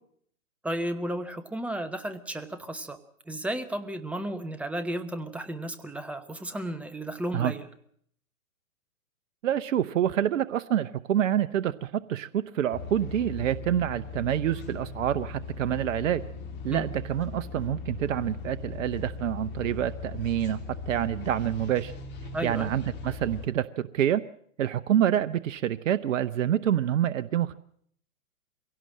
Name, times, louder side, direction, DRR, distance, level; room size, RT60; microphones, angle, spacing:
voice 1, 0.6-3.0 3.3-7.7 16.7-16.9 22.3-22.7, right 1 dB, 5° right, 9 dB, 0.9 m, -33 dB
voice 2, 9.4-16.2 16.6-20.6 20.9-21.9 22.4-24.2 24.6-27.5, right 10 dB, 60° right, 12 dB, 0.9 m, -27 dB
sound 1, 12.7-23.5, left 5 dB, 25° left, 2.9 m, -39 dB
23.5 x 17.0 x 7.6 m, 0.66 s
hypercardioid pair, 130°, 43 cm